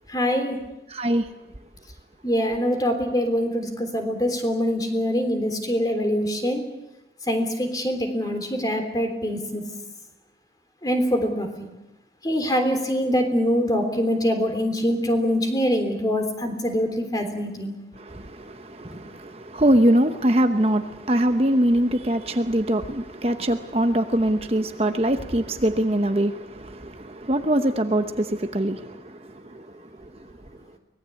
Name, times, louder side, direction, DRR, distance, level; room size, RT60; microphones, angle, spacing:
voice 1, 0.1-0.6 2.2-6.6 7.3-9.6 10.8-11.5 12.2-17.7 18.8-19.0, equal, 20° left, 3.5 m, -24 dB
voice 2, 0.9-1.3 18.0-29.7, right 1 dB, 35° right, 1.0 m, -23 dB
24.0 x 19.5 x 8.4 m
head